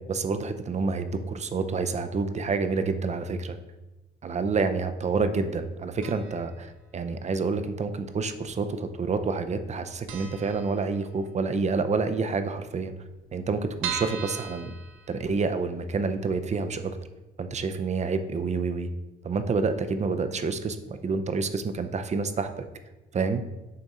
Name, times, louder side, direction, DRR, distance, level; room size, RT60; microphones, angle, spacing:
voice 1, 0.0-3.6 4.2-12.9 13.3-14.7 15.1-17.0 17.4-18.9 19.2-22.7 23.1-23.4, right 4 dB, 35° right, 9 dB, 0.5 m, -28 dB
sound 1, 6.0-6.6 6.8-6.9 7.8-8.5 8.8-9.0 9.3-9.4 9.7-9.8 10.1-11.4 11.8-11.9 12.1-12.2 12.4-12.5 13.0-15.7 16.1-16.2 16.6-16.7, right 7 dB, 90° right, 0.6 m, -38 dB
6.5 x 3.6 x 4.2 m, 1.1 s
cardioid pair, 90°, 20 cm